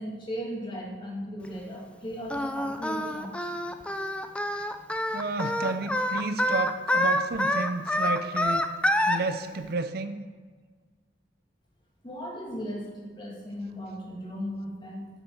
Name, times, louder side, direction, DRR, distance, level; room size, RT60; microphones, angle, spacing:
voice 1, 0.0-3.5 12.0-15.1, equal, 25° left, -3 dB, 2.4 m, -37 dB
Singing, 2.3-9.2, left 1 dB, 5° left, 0.5 m, -27 dB
voice 2, 5.1-8.7 9.1-10.2, right 3 dB, 60° right, 10 dB, 0.5 m, -31 dB
7.5 x 6.3 x 7.6 m, 1.4 s
head